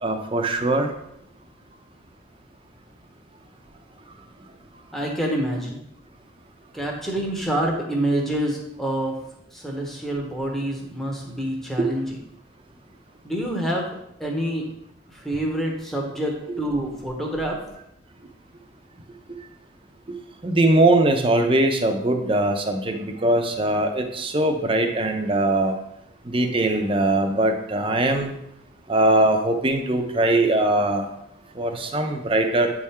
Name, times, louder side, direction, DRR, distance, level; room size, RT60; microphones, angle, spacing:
voice 1, 0.0-0.9 11.8-11.9 20.1-20.2 20.4-25.8 26.2-28.4 28.9-31.1 31.5-32.7, right 2 dB, 25° right, 4 dB, 0.7 m, -21 dB
voice 2, 4.9-5.8 6.7-9.1 9.5-12.1 13.2-13.9 14.2-14.6 15.1-17.6, right 1 dB, ahead, -1 dB, 1.0 m, -27 dB
8.7 x 3.6 x 4.3 m, 0.79 s
head